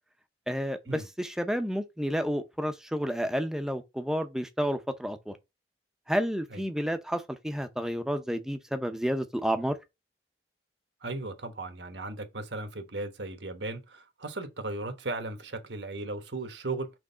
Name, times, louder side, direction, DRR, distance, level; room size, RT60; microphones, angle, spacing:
voice 1, 0.5-5.4 6.1-9.8, equal, 5° right, 0.7 m, -30 dB
voice 2, 11.0-16.9, right 2 dB, 75° right, 1.3 m, -36 dB
6.2 x 3.2 x 5.5 m
head